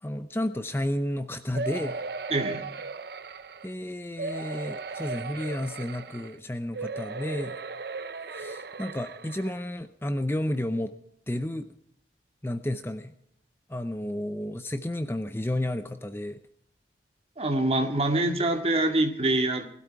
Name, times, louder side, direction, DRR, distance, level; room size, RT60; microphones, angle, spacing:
voice 1, 0.0-2.0 3.6-7.6 8.3-10.9 11.3-11.7 12.4-13.1 13.7-16.4, left 1 dB, 15° left, 10 dB, 0.6 m, -31 dB
sound 1, 1.5-3.7 4.2-6.3 6.7-9.6 10.2-10.3 10.5-10.6, right 3 dB, 60° right, 0.8 m, -36 dB
voice 2, 2.3-2.6 17.4-19.7, right 2 dB, 35° right, 4 dB, 2.1 m, -25 dB
20.0 x 12.5 x 4.6 m, 0.72 s
head